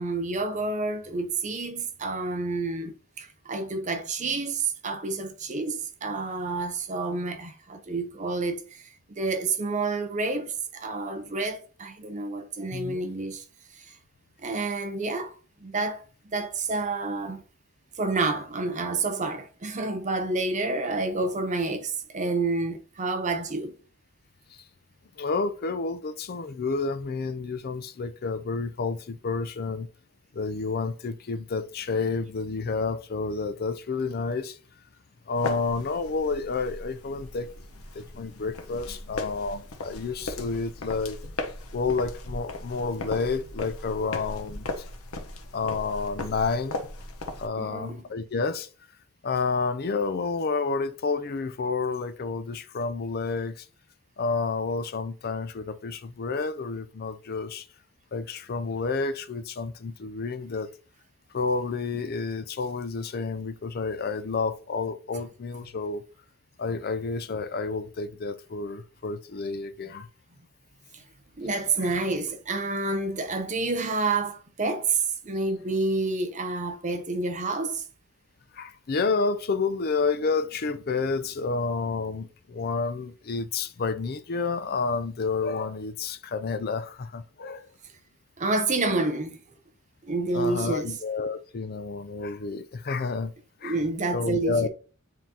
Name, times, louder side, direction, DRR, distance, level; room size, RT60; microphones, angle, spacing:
voice 1, 0.0-13.4 13.7-13.9 14.4-15.3 15.6-16.0 16.3-17.4 17.9-23.7 47.6-48.0 70.9-71.0 71.4-75.0 75.2-77.8 88.4-89.4 90.1-91.0 93.6-94.7, right 3 dB, 35° right, 0.7 m, -29 dB
voice 2, 12.7-13.1 24.5-24.6 25.2-29.9 30.3-34.6 35.3-37.5 37.9-41.2 41.7-44.8 45.5-46.9 47.4-48.7 49.2-53.7 54.2-57.6 58.1-60.7 61.3-66.0 66.6-70.1 78.5-87.7 90.3-93.3 93.6-93.8 94.1-94.7, left 4 dB, 45° left, 0.5 m, -30 dB
sound 1, 35.4-47.5, left 2 dB, 80° left, 1.0 m, -37 dB
9.2 x 3.8 x 2.8 m
head